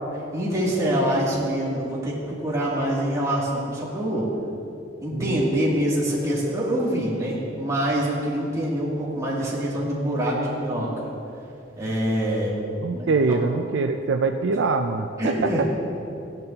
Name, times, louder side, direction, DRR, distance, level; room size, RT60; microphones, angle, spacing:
voice 1, 0.3-4.3 5.0-10.9 11.8-12.5 12.9-13.4 15.2-15.6, right 1 dB, 20° right, -7 dB, 2.6 m, -25 dB
voice 2, 12.8-15.6, right 4 dB, 65° right, 6 dB, 0.4 m, -24 dB
15.5 x 10.5 x 2.9 m, 2.7 s
head